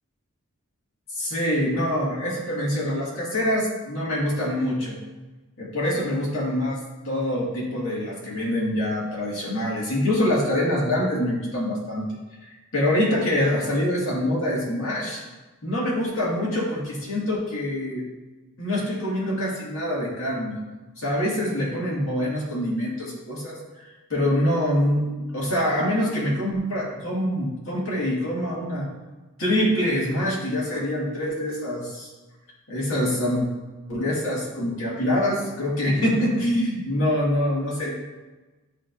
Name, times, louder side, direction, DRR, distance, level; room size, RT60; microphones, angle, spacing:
voice 1, 1.2-5.0 5.6-6.8 7.0-12.1 12.7-15.2 15.6-18.0 18.6-20.6 21.0-23.6 24.1-25.1 25.3-28.9 29.4-32.1 32.7-33.5 33.9-37.9, left 1 dB, 70° left, -5 dB, 2.0 m, -25 dB
10.5 x 3.7 x 2.6 m, 1.2 s
head